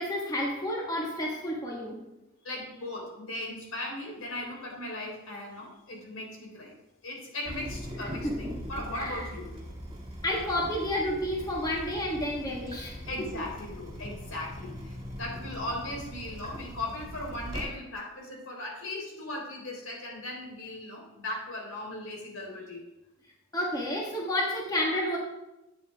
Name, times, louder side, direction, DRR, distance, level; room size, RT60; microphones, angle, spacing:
voice 1, 0.0-2.0 8.2-8.3 8.9-9.2 10.2-13.0 23.5-25.2, left 1 dB, 15° left, -2 dB, 1.4 m, -30 dB
voice 2, 2.4-6.7 7.0-9.5 13.1-22.8, left 1 dB, 75° left, -1 dB, 3.7 m, -38 dB
Water tap faucet / Drip, 7.4-17.6, equal, 25° right, 2.6 m, -41 dB
12.0 x 8.6 x 3.4 m, 0.97 s
head